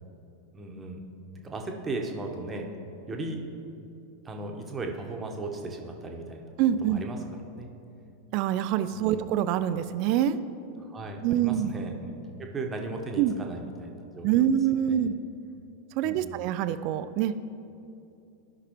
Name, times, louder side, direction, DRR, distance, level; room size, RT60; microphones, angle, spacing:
voice 1, 0.5-1.0 1.4-2.6 3.1-3.4 4.2-6.5 6.8-7.2 7.5-7.7 8.9-9.3 10.8-12.1 12.4-14.5 14.9-15.1 16.0-16.4, right 2 dB, 20° right, 2 dB, 1.1 m, -36 dB
voice 2, 6.6-7.0 8.3-10.4 11.2-11.7 13.2-13.4 14.2-15.1 16.0-17.4, right 10 dB, 45° right, 13 dB, 0.3 m, -25 dB
15.0 x 5.8 x 3.1 m, 2.7 s
figure-of-eight pair, 90°, 0 cm